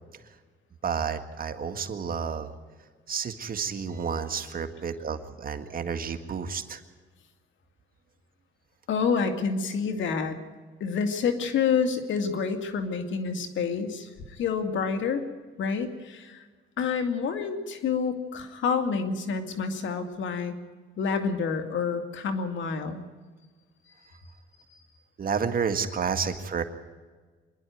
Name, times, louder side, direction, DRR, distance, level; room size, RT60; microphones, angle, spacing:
voice 1, 0.8-2.5 3.1-6.8 24.0-24.2 25.2-26.6, right 6 dB, 45° right, 6 dB, 1.9 m, -30 dB
voice 2, 8.9-10.4 10.8-15.2 15.6-16.4 16.8-20.5 21.0-23.0, left 5 dB, 70° left, 7 dB, 2.3 m, -28 dB
25.5 x 11.0 x 9.3 m, 1.4 s
cardioid pair, 90°, 20 cm